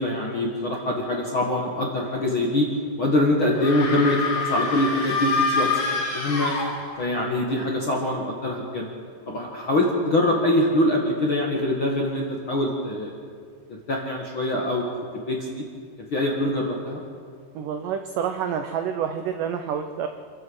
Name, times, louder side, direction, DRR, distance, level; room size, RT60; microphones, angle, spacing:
voice 1, 0.0-2.7 3.0-5.7 6.1-6.5 7.0-8.9 9.3-13.1 13.9-14.8 15.1-15.6 16.1-17.0, left 1 dB, 45° left, -1 dB, 1.7 m, -24 dB
sound 1, 3.5-7.2, left 4 dB, 65° left, 5.3 m, -26 dB
voice 2, 17.6-20.1, right 8 dB, 80° right, 7 dB, 1.9 m, -28 dB
27.0 x 12.0 x 7.9 m, 2.2 s
omnidirectional pair, 4.9 m